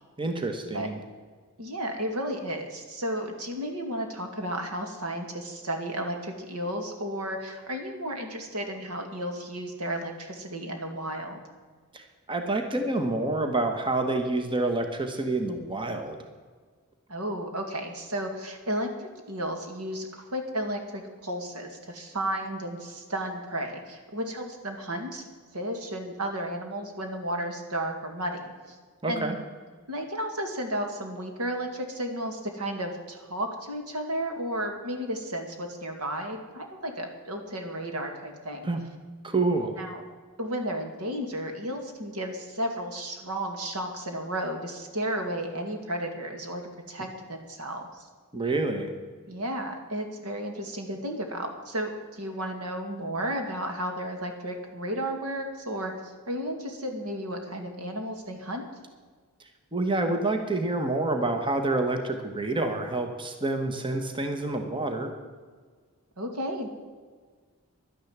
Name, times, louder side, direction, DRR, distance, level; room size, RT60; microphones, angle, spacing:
voice 1, 0.2-1.0 11.9-12.0 12.3-16.2 29.0-29.4 38.6-38.8 39.2-39.7 48.3-48.9 59.7-65.1, right 2 dB, 20° right, 5 dB, 1.2 m, -28 dB
voice 2, 1.6-11.4 17.1-18.9 19.3-25.2 25.5-28.8 29.1-29.4 29.9-38.7 39.8-40.0 40.4-48.1 49.3-58.6 66.2-66.7, right 1 dB, 75° right, 4 dB, 2.2 m, -33 dB
11.5 x 10.0 x 7.4 m, 1.5 s
head